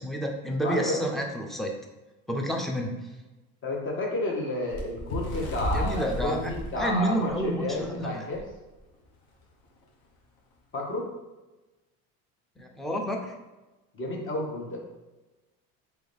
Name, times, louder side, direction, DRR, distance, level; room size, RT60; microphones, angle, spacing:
voice 1, 0.0-1.7 2.3-3.1 5.7-8.3 12.6-13.3, right 1 dB, ahead, 1 dB, 0.4 m, -30 dB
voice 2, 0.6-1.0 3.6-8.4 10.7-11.1 13.9-14.8, left 2 dB, 30° left, 0 dB, 1.1 m, -31 dB
Bird, 4.7-7.9 8.3-8.5 8.8-9.0 9.8-9.9, equal, 65° left, 1.2 m, -33 dB
3.7 x 3.1 x 3.4 m, 1.1 s
supercardioid pair, 105°, 42 cm